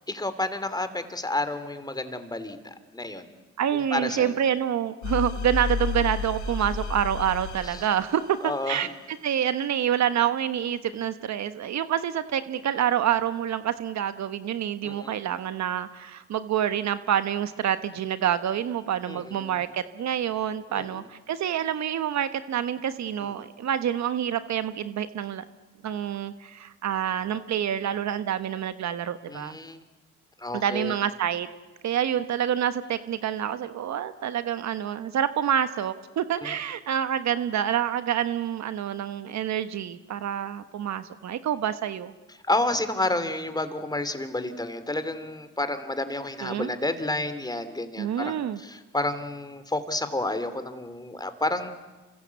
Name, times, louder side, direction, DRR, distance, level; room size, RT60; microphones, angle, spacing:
voice 1, 0.1-3.4 3.7-4.4 7.6-7.8 8.4-8.9 14.8-15.2 19.1-19.6 20.7-21.1 23.2-23.5 29.3-29.8 30.4-30.9 36.4-36.5 42.4-51.7, left 2 dB, 15° left, 10 dB, 2.8 m, -30 dB
voice 2, 3.6-25.4 25.8-29.5 30.5-31.5 31.8-42.1 46.4-46.7 48.0-48.6, right 9 dB, 65° right, 11 dB, 1.3 m, -27 dB
sound 1, 5.0-8.6, left 5 dB, 70° left, 3.1 m, -31 dB
28.5 x 25.0 x 8.3 m, 1.2 s
cardioid pair, 90°, 30 cm